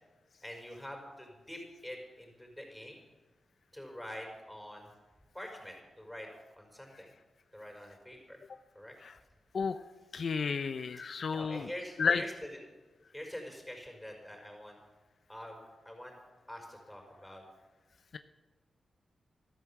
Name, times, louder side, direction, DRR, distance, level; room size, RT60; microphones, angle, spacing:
voice 1, 0.4-3.0 3.7-4.9 5.3-6.3 6.5-7.1 7.5-8.4 8.7-8.9 11.0-11.1 11.3-12.6 13.1-14.8 15.3-15.6 15.9-16.2 16.5-17.4, equal, 5° left, 1 dB, 5.4 m, -45 dB
voice 2, 10.1-11.6 12.0-12.2, left 5 dB, 65° left, 10 dB, 0.6 m, -31 dB
13.5 x 13.0 x 7.4 m, 1.3 s
cardioid pair, 80°, 0 cm